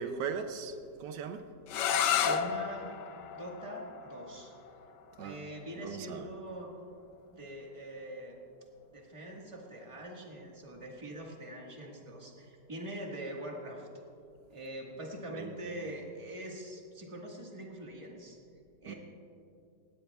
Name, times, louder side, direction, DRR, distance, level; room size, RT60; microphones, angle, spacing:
voice 1, 0.0-1.4 5.2-5.4 5.8-6.3 15.3-15.8 18.9-19.0, right 6 dB, 85° right, 8 dB, 1.3 m, -39 dB
sound 1, 1.7-7.4, left 8 dB, 85° left, 1.3 m, -34 dB
voice 2, 2.0-2.9 3.3-4.5 5.2-6.7 7.2-8.4 8.9-13.9 14.5-18.4 18.8-18.9, right 1 dB, 20° right, -1 dB, 1.6 m, -43 dB
18.5 x 16.5 x 2.4 m, 2.5 s
omnidirectional pair, 1.8 m